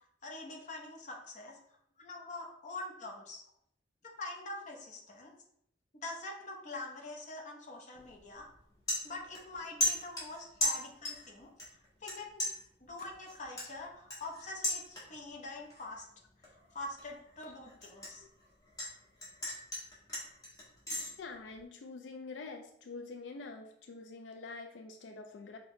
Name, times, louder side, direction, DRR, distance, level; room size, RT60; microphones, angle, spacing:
voice 1, 0.2-1.6 2.0-3.4 4.2-5.3 6.0-8.5 9.0-11.5 12.0-12.4 12.8-16.0 16.5-18.3, left 2 dB, 40° left, 0 dB, 0.8 m, -44 dB
sound 1, 7.9-8.2 8.5-9.5 9.8-11.3 11.6-12.1 12.4-15.3 15.7-16.0 16.4-18.9 19.2-21.1, left 1 dB, 20° left, 1.4 m, -36 dB
voice 2, 21.2-25.6, left 3 dB, 85° left, 4 dB, 0.4 m, -46 dB
5.5 x 2.2 x 3.0 m, 0.72 s
head